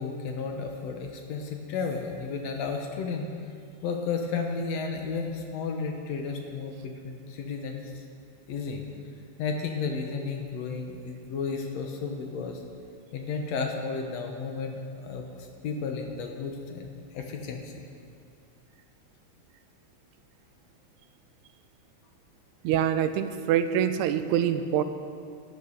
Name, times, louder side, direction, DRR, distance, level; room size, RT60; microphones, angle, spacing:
voice 1, 0.0-3.3 3.8-8.0 8.5-8.8 9.4-12.6 13.1-17.7, left 5 dB, 70° left, 3 dB, 2.0 m, -33 dB
voice 2, 22.6-24.8, right 9 dB, 90° right, 11 dB, 2.0 m, -25 dB
12.5 x 8.4 x 6.3 m, 2.3 s
omnidirectional pair, 3.3 m